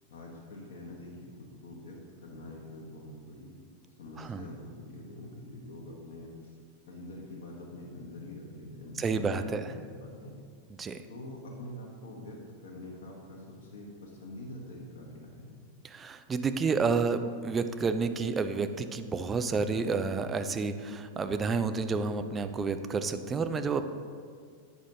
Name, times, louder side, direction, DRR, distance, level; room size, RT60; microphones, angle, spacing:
voice 1, 0.1-1.1 1.4-2.0 2.2-3.6 4.0-6.5 6.9-10.4 11.1-15.6, left 1 dB, 55° left, -3 dB, 1.0 m, -45 dB
voice 2, 9.0-9.7 10.8-11.0 15.8-23.9, right 4 dB, 20° right, 10 dB, 0.4 m, -30 dB
8.2 x 6.1 x 2.7 m, 2.1 s
figure-of-eight pair, 90°, 0 cm